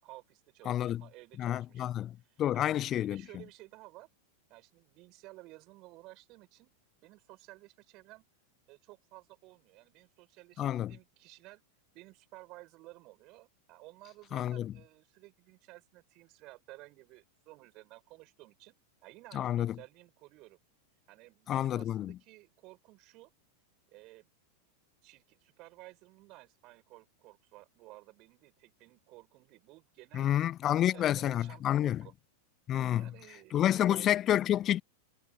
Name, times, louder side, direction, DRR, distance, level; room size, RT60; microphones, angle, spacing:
voice 1, 0.0-4.1 4.5-6.7 7.0-8.3 8.7-11.6 11.9-20.6 21.1-23.3 23.9-24.3 25.0-30.4 30.6-32.1 33.0-34.1, right 21 dB, 40° right, 6.4 m, -55 dB
voice 2, 0.7-1.0 1.4-2.1 2.4-3.2 10.6-10.9 14.3-14.7 19.3-19.7 21.5-22.2 30.1-32.1 32.7-33.1 33.5-34.8, left 11 dB, 30° left, 0.6 m, -29 dB
figure-of-eight pair, 90°, 0 cm